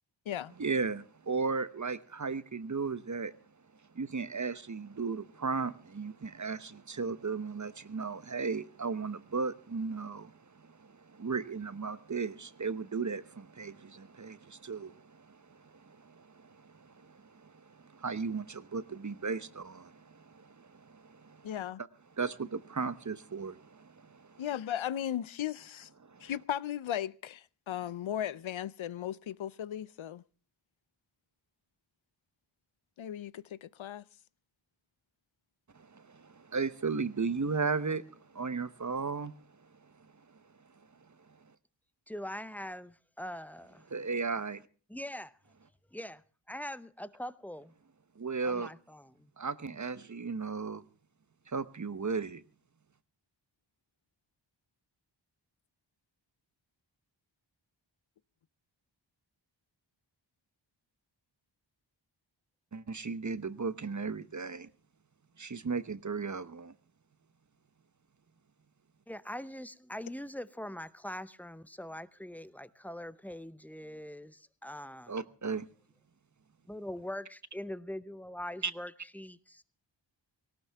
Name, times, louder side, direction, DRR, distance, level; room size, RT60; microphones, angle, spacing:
voice 1, 0.6-3.4 3.9-21.6 22.1-24.4 26.0-26.3 35.7-41.5 43.9-44.7 48.1-48.7 49.4-50.8 51.5-52.4 62.7-64.7 65.4-66.7 75.1-75.7 78.6-78.7, right 4 dB, 40° right, 0.9 m, -36 dB
voice 2, 21.4-21.8 24.4-25.9 26.2-30.2 33.0-34.0, left 10 dB, 85° left, 0.6 m, -36 dB
voice 3, 42.1-43.8 44.9-45.4 45.9-46.2 46.5-47.7 48.4-49.3 69.1-75.1 76.7-79.6, left 1 dB, 5° left, 0.7 m, -42 dB
18.5 x 18.0 x 3.5 m
wide cardioid pair, 90°, 46 cm